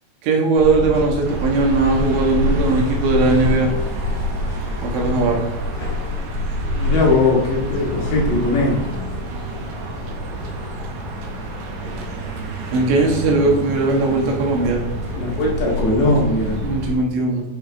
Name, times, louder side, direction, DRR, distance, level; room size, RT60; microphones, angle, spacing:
voice 1, 0.2-3.7 4.8-5.5 12.7-14.8 16.6-17.4, right 3 dB, 90° right, 0 dB, 3.9 m, -19 dB
sound 1, 0.6-17.0, left 1 dB, 40° left, 3.7 m, -27 dB
sound 2, 1.2-16.9, right 3 dB, 70° right, 2.9 m, -33 dB
voice 2, 6.8-8.8 15.2-16.6, left 2 dB, 80° left, -4 dB, 4.2 m, -19 dB
9.3 x 6.6 x 3.5 m, 0.97 s
omnidirectional pair, 5.0 m